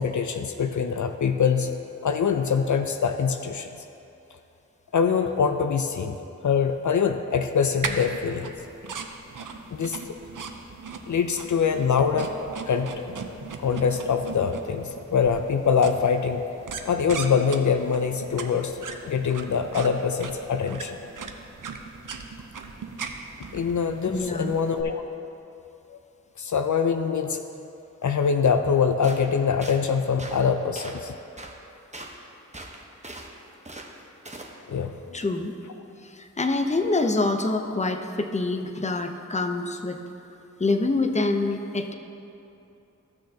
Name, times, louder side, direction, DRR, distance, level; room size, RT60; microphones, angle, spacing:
voice 1, 0.0-1.8 2.0-3.7 4.9-6.2 6.4-8.5 9.7-10.0 11.1-12.3 12.7-13.0 13.6-16.4 16.8-20.9 23.5-24.9 25.9-26.0 26.4-27.4 28.0-31.1 34.7-34.9, left 6 dB, 70° left, 7 dB, 0.5 m, -24 dB
sound 1, 7.8-24.8, right 5 dB, 85° right, 0.6 m, -39 dB
voice 2, 24.1-24.6 35.1-35.6 36.0-40.0 40.6-41.9, left 2 dB, 20° left, 6 dB, 0.6 m, -26 dB
sound 2, 29.0-29.2 29.6-29.8 30.2-30.4 30.7-31.0 31.4-31.5 31.9-32.1 32.5-33.3 33.6-33.9 34.2-34.5, right 2 dB, 20° right, 1.0 m, -40 dB
14.5 x 6.4 x 2.8 m, 2.8 s
wide cardioid pair, 40°, 31 cm